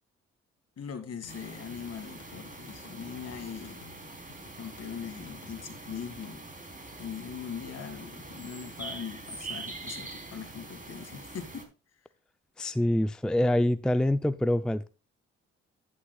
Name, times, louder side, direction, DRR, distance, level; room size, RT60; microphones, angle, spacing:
voice 1, 0.8-3.8 4.6-6.5 7.0-11.7, left 7 dB, 55° left, 2.2 m, -41 dB
sound 1, 1.2-6.4, left 8 dB, 85° left, 1.5 m, -54 dB
sound 2, 1.3-11.6, right 2 dB, 25° right, 3.6 m, -44 dB
voice 2, 12.6-14.9, left 1 dB, 5° left, 0.5 m, -25 dB
11.0 x 10.0 x 2.3 m
supercardioid pair, 60°, 30 cm